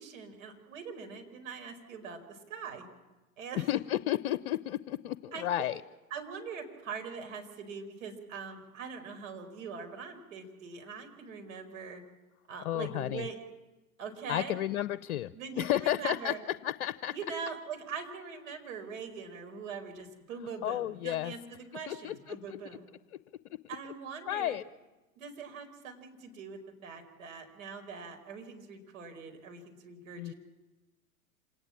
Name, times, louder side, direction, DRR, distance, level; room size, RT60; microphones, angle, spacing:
voice 1, 0.0-2.9 3.4-3.7 5.3-5.7 6.1-12.0 12.5-13.4 14.0-14.5 15.3-16.4 17.1-22.8 23.7-24.6 25.2-30.3, right 5 dB, 65° right, 5 dB, 4.9 m, -42 dB
voice 2, 3.7-5.8 12.6-13.3 14.3-16.3 16.6-17.1 20.6-21.3 21.9-22.4 24.3-24.6 30.2-30.3, left 13 dB, 60° left, 15 dB, 0.8 m, -32 dB
27.0 x 19.0 x 7.5 m, 1.1 s
hypercardioid pair, 100°, 42 cm